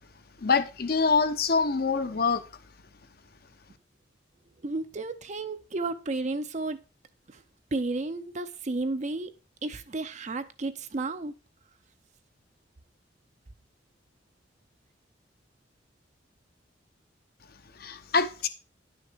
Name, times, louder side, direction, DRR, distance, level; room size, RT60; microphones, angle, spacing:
voice 1, 0.4-2.4 17.8-18.5, left 4 dB, 55° left, 0.9 m, -25 dB
voice 2, 4.6-6.8 7.3-7.4 7.7-9.3 9.6-11.3, right 3 dB, 40° right, 0.6 m, -32 dB
10.5 x 6.3 x 4.6 m
head